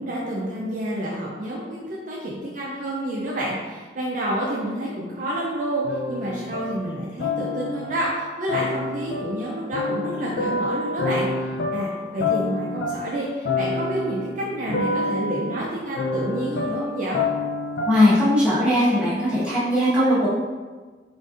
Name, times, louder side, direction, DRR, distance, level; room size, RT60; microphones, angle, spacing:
voice 1, 0.0-5.8 6.1-11.3 11.7-17.2, right 1 dB, 50° right, -5 dB, 0.4 m, -29 dB
sound 1, 5.8-8.1 8.5-18.2, left 3 dB, 65° left, 0.4 m, -28 dB
voice 2, 17.9-20.3, left 1 dB, 5° right, -12 dB, 1.1 m, -19 dB
3.9 x 2.5 x 2.4 m, 1.4 s
head